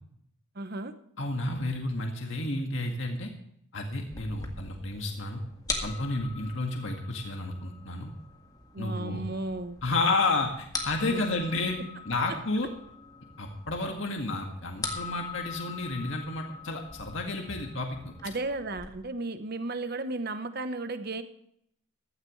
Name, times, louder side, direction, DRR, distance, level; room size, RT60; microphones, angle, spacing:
voice 1, 0.5-0.9 8.7-9.8 11.1-11.2 18.2-21.2, right 2 dB, 45° right, 9 dB, 1.0 m, -34 dB
voice 2, 1.2-3.3 3.7-5.4 5.8-8.1 8.8-9.2 9.8-11.8 12.1-12.7 13.4-18.1, left 2 dB, 60° left, 2 dB, 2.0 m, -31 dB
sound 1, 4.1-18.9, left 3 dB, 15° left, 1.8 m, -42 dB
15.5 x 14.0 x 3.2 m, 0.71 s
head